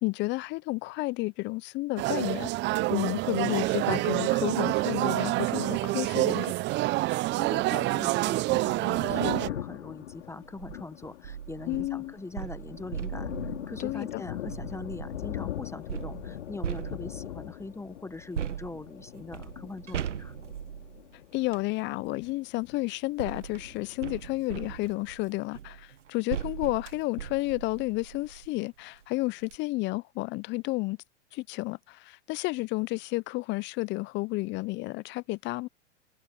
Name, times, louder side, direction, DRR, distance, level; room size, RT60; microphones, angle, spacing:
voice 1, 0.0-2.5 2.9-6.5 11.7-12.1 13.8-14.2 21.3-31.0 31.3-35.7, left 21 dB, 30° left, 0.6 m, -31 dB
sound 1, 2.0-9.5, right 20 dB, 30° right, 0.6 m, -27 dB
voice 2, 7.3-20.4, left 3 dB, 10° left, 1.1 m, -42 dB
Thunder, 8.6-23.0 23.3-24.6, left 12 dB, 75° left, 4.0 m, -41 dB
sound 2, 10.4-10.8 11.2-15.3 15.9-17.4 18.3-21.7 22.7-28.6 29.0-29.1 29.4-29.6, right 9 dB, 85° right, 1.3 m, -39 dB
hypercardioid pair, 105°, 35 cm